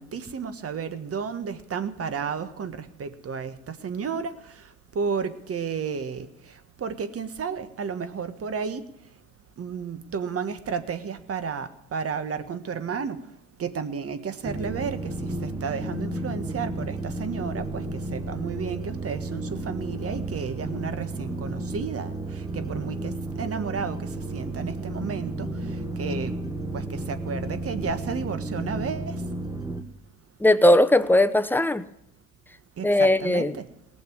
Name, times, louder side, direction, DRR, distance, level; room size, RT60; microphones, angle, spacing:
voice 1, 0.0-4.6 4.9-6.3 6.8-8.8 9.6-13.2 13.6-15.1 15.4-25.5 26.0-26.3 26.7-29.1 32.8-33.6, right 6 dB, 40° right, 11 dB, 1.6 m, -32 dB
sound 1, 14.4-29.8, right 2 dB, 10° right, 1.7 m, -32 dB
voice 2, 30.4-31.9 32.8-33.5, left 1 dB, 5° left, 10 dB, 0.8 m, -19 dB
18.5 x 7.3 x 9.7 m, 0.84 s
supercardioid pair, 75°, 37 cm